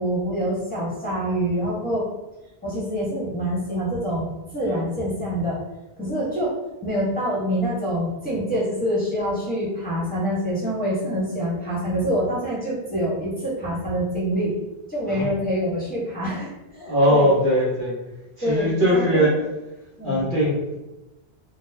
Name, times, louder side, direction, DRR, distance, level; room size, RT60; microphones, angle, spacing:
voice 1, 0.0-2.1 2.6-4.3 4.5-5.6 6.0-6.5 6.8-14.5 14.9-17.3 18.4-19.4 20.0-20.3, equal, 10° left, -9 dB, 1.0 m, -26 dB
voice 2, 16.8-18.0 18.5-19.3 20.0-20.7, equal, 55° right, -7 dB, 1.1 m, -20 dB
3.8 x 2.2 x 2.7 m, 0.98 s
omnidirectional pair, 1.1 m